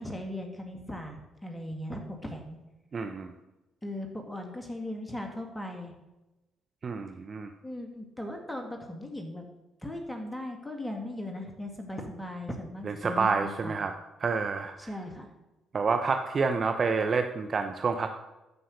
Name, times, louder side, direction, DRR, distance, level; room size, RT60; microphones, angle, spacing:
voice 1, 0.0-2.6 3.8-5.9 7.6-9.4 9.8-13.7 14.8-15.3, left 1 dB, 10° left, 3 dB, 2.2 m, -38 dB
voice 2, 2.9-3.3 6.8-7.5 12.9-13.9 14.2-14.7 15.7-18.1, right 4 dB, 45° right, 6 dB, 0.8 m, -28 dB
13.5 x 5.6 x 6.6 m, 1.0 s
hypercardioid pair, 50°, 0 cm